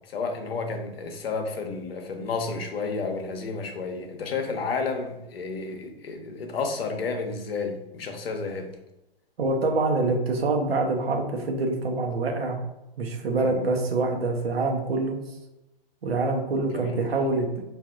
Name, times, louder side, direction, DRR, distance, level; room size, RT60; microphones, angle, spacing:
voice 1, 0.1-8.7 13.4-13.6 16.7-17.0, left 4 dB, 75° left, 4 dB, 0.8 m, -31 dB
voice 2, 9.4-12.6 13.0-15.2 16.0-17.6, right 3 dB, 80° right, 3 dB, 0.9 m, -25 dB
4.8 x 2.5 x 2.4 m, 0.94 s
hypercardioid pair, 120°, 30 cm